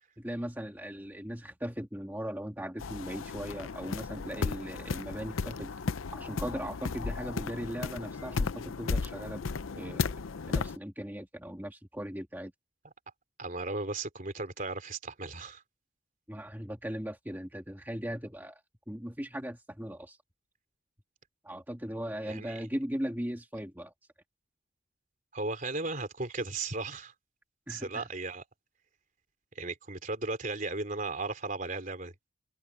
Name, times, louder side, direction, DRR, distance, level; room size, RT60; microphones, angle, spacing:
voice 1, 0.2-5.7 6.1-9.4 9.8-10.1 10.5-12.5 16.3-18.6 18.9-20.2 21.4-23.9 27.7-28.1, equal, 10° right, 1.9 m, -38 dB
sound 1, 2.8-10.8, left 4 dB, 80° left, 0.6 m, -34 dB
voice 2, 13.4-15.6 22.3-22.6 25.3-27.1 27.7-28.4 29.6-32.1, right 3 dB, 40° right, 3.5 m, -36 dB
open air
head